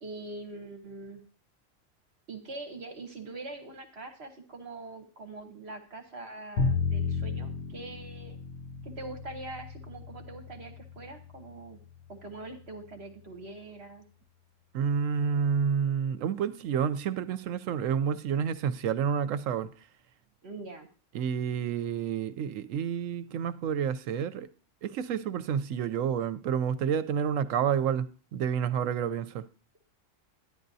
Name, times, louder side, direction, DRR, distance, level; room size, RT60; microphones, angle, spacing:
voice 1, 0.0-1.2 2.3-8.4 8.8-11.8 12.1-14.0 20.4-20.9, right 2 dB, 55° right, 1.2 m, -43 dB
Bowed string instrument, 6.6-12.7, left 5 dB, 65° left, 1.0 m, -34 dB
voice 2, 14.7-19.7 21.1-24.5 24.8-28.1 28.3-29.4, right 7 dB, 85° right, 1.0 m, -29 dB
11.0 x 9.8 x 2.7 m
omnidirectional pair, 1.3 m